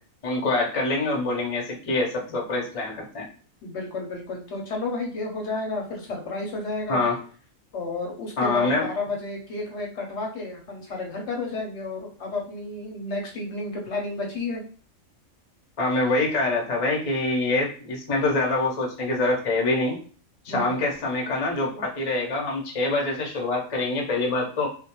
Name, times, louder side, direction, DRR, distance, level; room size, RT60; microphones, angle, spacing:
voice 1, 0.2-3.2 6.9-7.1 8.4-8.9 15.8-20.0 20.4-24.7, left 2 dB, 40° left, -1 dB, 0.5 m, -25 dB
voice 2, 3.6-7.0 7.7-14.6 20.5-20.9, left 3 dB, 65° left, 0 dB, 0.8 m, -31 dB
2.3 x 2.1 x 2.8 m, 0.40 s
omnidirectional pair, 1.5 m